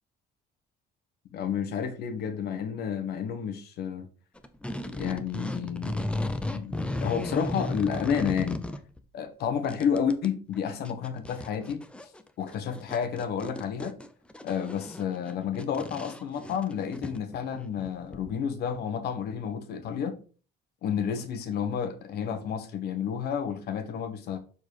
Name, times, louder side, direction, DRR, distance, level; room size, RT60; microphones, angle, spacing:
voice 1, 1.3-4.1 4.9-6.0 6.4-8.6 9.1-11.8 12.4-14.0 14.4-20.2 20.8-24.4, left 7 dB, 70° left, 1.4 m, -31 dB
sound 1, 4.4-9.0 9.4-10.3 10.5-10.6 10.8-18.3, left 1 dB, 5° left, 0.7 m, -35 dB
6.9 x 4.2 x 4.8 m
cardioid pair, 110°, 17 cm